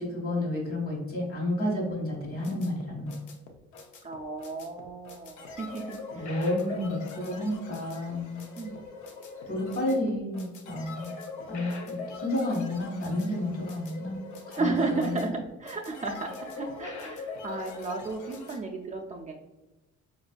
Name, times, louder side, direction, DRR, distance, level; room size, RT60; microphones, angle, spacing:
voice 1, 0.0-3.1 6.1-8.4 9.5-11.1 11.5-14.2 14.5-15.2, left 1 dB, 50° left, -1 dB, 1.3 m, -31 dB
sound 1, 2.1-18.6, left 4 dB, 75° left, 0.6 m, -42 dB
voice 2, 4.0-6.3 7.2-7.3 8.6-8.8 14.6-19.3, right 3 dB, 25° right, -2 dB, 0.4 m, -33 dB
4.0 x 2.5 x 2.2 m, 1.1 s
cardioid pair, 90°, 30 cm